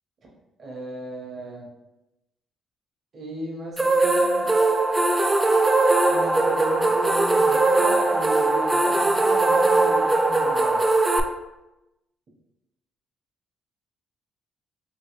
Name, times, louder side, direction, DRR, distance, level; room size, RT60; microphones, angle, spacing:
voice 1, 0.6-1.7 3.1-4.5 6.1-10.8, right 1 dB, 50° right, -3 dB, 1.0 m, -34 dB
sound 1, 3.8-11.2, right 2 dB, 20° right, 0.3 m, -20 dB
3.1 x 2.8 x 3.0 m, 0.97 s
cardioid pair, 90°, 0 cm